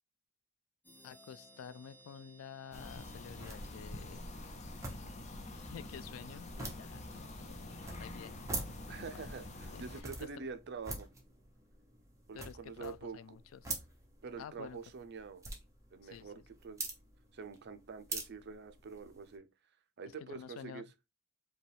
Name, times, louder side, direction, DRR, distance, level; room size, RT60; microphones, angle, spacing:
sound 1, 0.8-4.4, right 1 dB, 10° left, 0.9 m, -61 dB
voice 1, 1.0-4.3 5.5-7.6 7.9-8.4 9.1-9.4 9.7-10.5 12.3-13.8 14.4-14.8 16.0-16.4 20.1-20.8, left 8 dB, 90° left, 0.3 m, -50 dB
sound 2, 2.7-10.0, left 2 dB, 35° left, 0.6 m, -46 dB
sound 3, 3.1-19.4, right 2 dB, 15° right, 0.9 m, -47 dB
voice 2, 8.9-11.1 12.3-13.2 14.2-15.4 15.9-16.9 17.3-19.5 20.0-20.8, right 5 dB, 55° right, 0.5 m, -46 dB
5.0 x 2.3 x 3.3 m
head